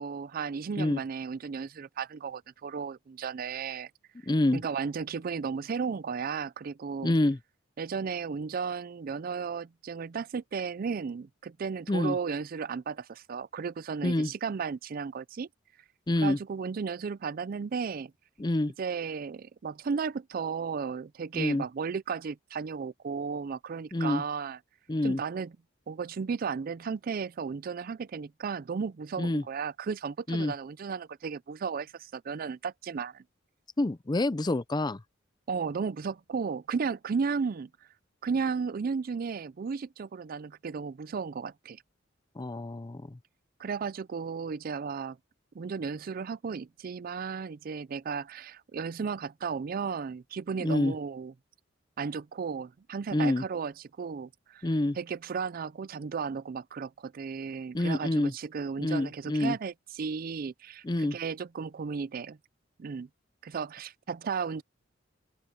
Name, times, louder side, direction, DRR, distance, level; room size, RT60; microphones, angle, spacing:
voice 1, 0.0-3.9 4.5-7.1 7.8-15.5 16.2-18.1 18.8-24.6 25.0-25.5 25.9-33.2 35.5-37.7 38.2-41.8 43.6-45.2 45.5-51.3 52.0-54.7 55.0-62.4 62.8-63.1 63.4-64.6, right 5 dB, 50° right, 0.4 m, -34 dB
voice 2, 4.3-4.6 7.0-7.4 11.9-12.2 14.0-14.3 16.1-16.4 18.4-18.7 21.3-21.6 23.9-24.2 24.9-25.2 29.2-29.4 30.3-30.5 33.8-35.0 42.4-43.2 50.6-50.9 53.1-53.4 54.6-55.0 57.7-58.3 58.8-59.6 60.8-61.2, left 1 dB, 20° left, 0.5 m, -27 dB
open air
head